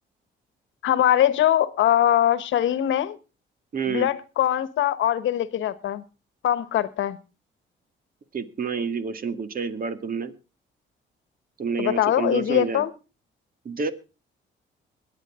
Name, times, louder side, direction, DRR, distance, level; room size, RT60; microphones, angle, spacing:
voice 1, 0.8-3.2 3.9-6.0 6.4-7.2 11.8-12.9, left 11 dB, 75° left, 15 dB, 1.3 m, -22 dB
voice 2, 3.7-4.1 8.3-10.3 11.6-12.9 13.7-13.9, right 5 dB, 45° right, 10 dB, 1.9 m, -28 dB
22.0 x 9.5 x 3.7 m, 0.32 s
cardioid pair, 90°, 20 cm